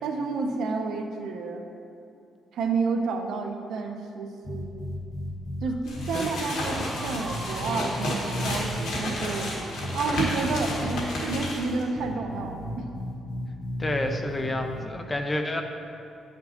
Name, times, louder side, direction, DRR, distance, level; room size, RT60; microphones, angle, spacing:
voice 1, 0.0-1.7 2.5-4.8 5.6-12.9, right 4 dB, 75° right, 4 dB, 0.6 m, -30 dB
sound 1, 4.4-5.6 5.9-6.1 6.6-9.5 9.8-11.0 11.3-11.5 11.9-14.8, left 1 dB, 70° left, 1.5 m, -35 dB
sound 2, 5.8-11.8, left 1 dB, 85° left, 1.5 m, -32 dB
sound 3, 6.6-12.1, right 2 dB, 30° right, 0.9 m, -41 dB
voice 2, 13.8-15.6, left 1 dB, 15° left, 4 dB, 0.4 m, -29 dB
9.8 x 5.9 x 2.9 m, 2.5 s
cardioid pair, 165°, 0 cm